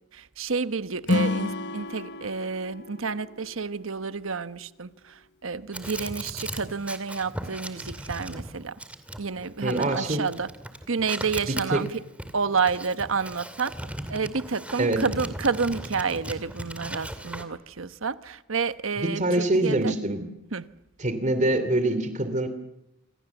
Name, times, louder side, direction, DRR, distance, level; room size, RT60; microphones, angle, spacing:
voice 1, 0.1-8.7 9.2-10.5 10.9-11.9 12.3-13.7 14.1-19.9 20.5-20.7, right 5 dB, 70° right, 1.1 m, -29 dB
Acoustic guitar / Strum, 1.0-4.3, left 2 dB, 60° left, 1.2 m, -30 dB
sound 1, 5.7-17.4, right 1 dB, 5° right, 2.5 m, -38 dB
voice 2, 9.6-10.2 11.5-11.9 14.8-15.0 19.0-20.3 21.0-22.5, right 1 dB, 40° right, 2.8 m, -25 dB
27.5 x 26.0 x 7.2 m
head